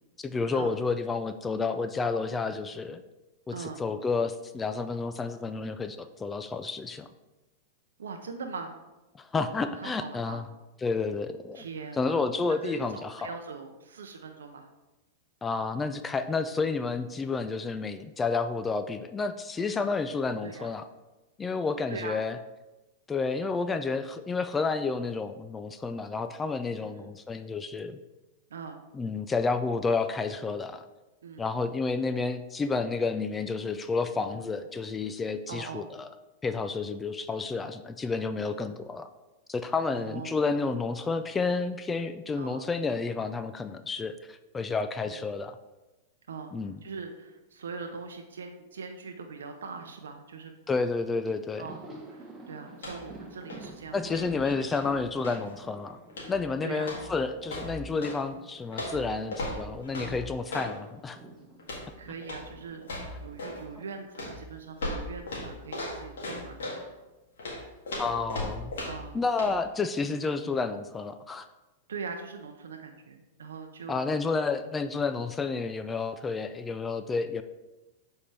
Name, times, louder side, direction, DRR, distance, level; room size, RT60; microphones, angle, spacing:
voice 1, 0.2-3.0 3.5-7.1 9.2-10.4 10.8-11.6 12.0-13.3 15.4-20.8 21.4-22.4 23.1-28.0 28.9-30.8 31.4-36.1 36.4-39.1 39.5-45.6 46.5-46.8 50.7-51.7 53.9-56.0 56.3-61.2 68.0-68.7 69.1-71.5 73.9-77.4, left 4 dB, 15° left, 10 dB, 0.3 m, -30 dB
voice 2, 3.5-3.8 8.0-8.8 9.4-10.4 11.5-14.7 20.4-20.7 21.9-22.2 26.8-27.1 28.5-28.8 31.2-31.4 34.3-34.4 35.5-35.8 39.9-40.3 40.6-40.7 42.4-42.6 45.0-45.2 46.3-46.5 46.8-50.5 51.6-51.8 52.1-54.6 56.6-56.9 62.0-62.9 63.2-66.9 68.8-69.2 71.9-74.2, right 5 dB, 85° right, 5 dB, 0.6 m, -41 dB
Thunder, 51.2-60.1 60.3-64.6 64.9-65.1 66.2-66.9, right 3 dB, 15° right, 1.1 m, -50 dB
sound 1, 52.7-53.2 53.4-55.5 56.1-56.5 56.8-58.2 58.7-60.7 61.6-61.9 62.2-62.5 62.8-63.6 64.2-66.8 67.4-69.1 69.4-69.5, left 1 dB, 85° left, 1.8 m, -37 dB
7.1 x 4.3 x 3.3 m, 1.1 s
hypercardioid pair, 120°, 0 cm